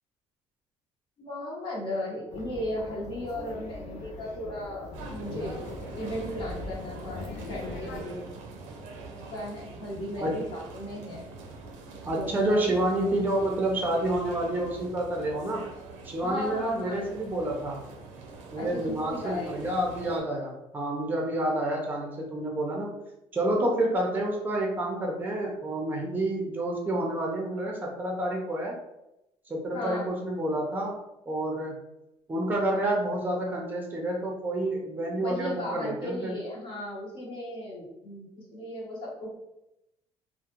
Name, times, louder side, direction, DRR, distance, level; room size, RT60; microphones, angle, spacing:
voice 1, 1.2-5.6 6.0-8.2 9.3-11.3 12.1-12.6 13.4-13.5 16.2-17.1 18.6-19.8 29.7-30.1 35.2-39.4, left 1 dB, 45° left, -4 dB, 0.8 m, -36 dB
sound 1, 2.3-8.0, left 3 dB, 75° left, 0.5 m, -40 dB
sound 2, 4.9-20.2, right 3 dB, 90° right, 0.5 m, -44 dB
voice 2, 12.0-15.6 16.0-17.8 18.5-22.9 23.3-28.7 29.5-31.0 31.3-31.8 32.3-36.4, right 1 dB, 15° right, 0 dB, 0.6 m, -29 dB
2.3 x 2.1 x 2.9 m, 0.89 s
cardioid pair, 100°, 12 cm